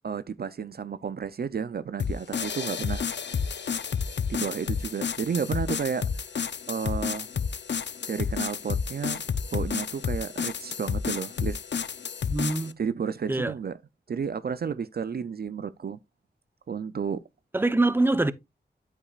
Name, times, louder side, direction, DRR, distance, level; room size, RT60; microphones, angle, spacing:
voice 1, 0.0-3.0 4.3-6.1 6.7-7.3 8.1-9.2 9.5-11.6 12.8-13.8 14.1-16.0 16.7-17.2, right 6 dB, 55° right, 0.5 m, -32 dB
sound 1, 2.0-12.7, left 6 dB, 75° left, 0.6 m, -31 dB
voice 2, 12.3-12.8 13.3-13.5 17.5-18.3, right 2 dB, 10° right, 0.8 m, -24 dB
8.9 x 8.1 x 2.4 m
wide cardioid pair, 75°, 19 cm